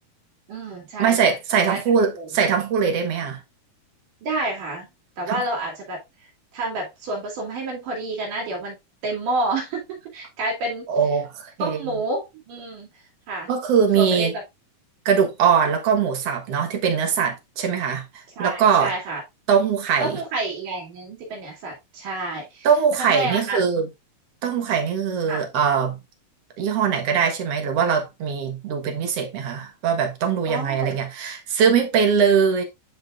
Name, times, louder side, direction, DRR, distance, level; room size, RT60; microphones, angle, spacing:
voice 1, 0.5-1.2 1.7-1.8 2.2-2.3 4.2-4.9 5.2-6.0 6.5-8.8 9.0-10.9 11.6-12.9 13.3-13.5 14.0-14.3 18.4-19.2 20.0-22.7 22.9-23.6 25.3-25.5 30.5-31.0, right 2 dB, 75° right, 4.1 m, -29 dB
voice 2, 1.0-3.4 5.3-5.4 10.9-11.8 13.5-14.3 15.1-18.9 19.5-20.2 22.6-23.9 24.4-26.0 26.6-32.6, right 6 dB, 55° right, 2.1 m, -21 dB
10.5 x 4.9 x 2.4 m
omnidirectional pair, 3.7 m